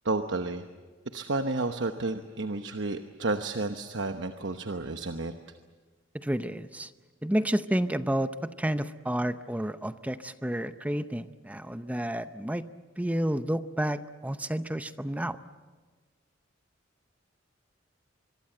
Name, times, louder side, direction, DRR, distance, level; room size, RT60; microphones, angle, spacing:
voice 1, 0.0-0.7 1.1-5.3, right 2 dB, 70° right, 7 dB, 1.0 m, -31 dB
voice 2, 6.2-6.9 7.2-12.7 13.0-15.4, right 1 dB, 10° right, 11 dB, 0.7 m, -30 dB
25.0 x 23.0 x 7.8 m, 1.4 s
head